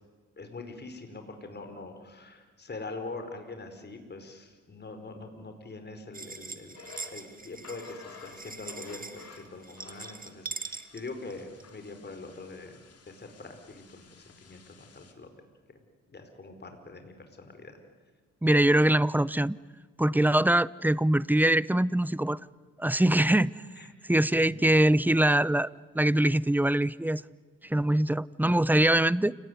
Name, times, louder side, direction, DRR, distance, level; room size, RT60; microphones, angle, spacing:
voice 1, 0.4-6.8 7.1-12.8 13.1-15.3 16.1-17.8 23.8-23.9 24.4-24.6, left 3 dB, 35° left, 6 dB, 4.9 m, -43 dB
sound 1, 6.1-11.7, right 4 dB, 30° right, 2.1 m, -42 dB
sound 2, 6.7-15.1, left 4 dB, 55° left, 3.8 m, -52 dB
voice 2, 18.4-19.6 20.0-22.4 22.8-23.5 24.1-25.7 25.9-27.2 27.6-29.4, right 1 dB, 5° right, 20 dB, 0.7 m, -23 dB
29.5 x 18.5 x 9.6 m, 1.4 s
cardioid pair, 75°, 29 cm